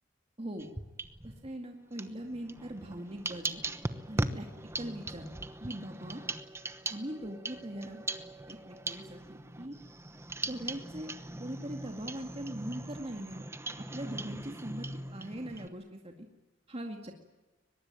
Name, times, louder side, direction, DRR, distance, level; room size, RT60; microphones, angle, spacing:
sound 1, 0.6-1.5 1.9-15.7, right 2 dB, 15° right, 1.0 m, -40 dB
voice 1, 1.2-3.6 4.1-4.5 4.8-5.3 5.6-6.2 6.9-8.1 8.5-9.8 10.5-11.1 11.4-13.4 13.8-16.1 16.7-17.1, right 1 dB, 30° right, 3 dB, 2.2 m, -41 dB
23.0 x 21.0 x 9.0 m, 1.2 s
head